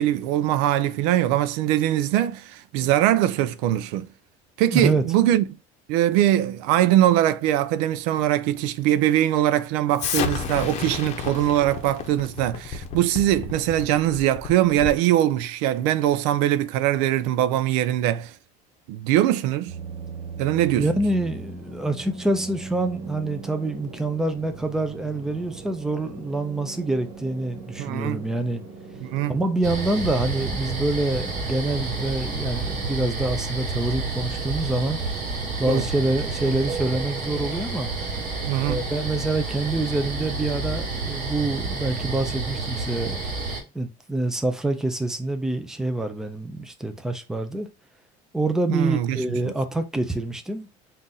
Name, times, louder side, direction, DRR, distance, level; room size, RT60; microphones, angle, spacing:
voice 1, 0.0-4.1 4.6-5.4 5.9-18.3 18.9-19.8 20.4-20.9 27.8-28.3 29.0-29.4 35.7-35.9 38.4-38.8 48.7-49.2, right 13 dB, 90° right, 0.5 m, -22 dB
voice 2, 4.7-5.0 20.8-28.6 29.3-35.0 35.6-37.9 38.6-43.2 43.7-47.7 48.3-50.7, right 2 dB, 5° right, 0.5 m, -26 dB
Explosion, 10.0-15.1, left 6 dB, 40° left, 0.7 m, -31 dB
sound 1, 19.7-36.6, right 4 dB, 30° right, 1.4 m, -40 dB
sound 2, 29.6-43.6, right 4 dB, 55° right, 2.1 m, -30 dB
3.9 x 2.6 x 4.0 m
cardioid pair, 155°, 17 cm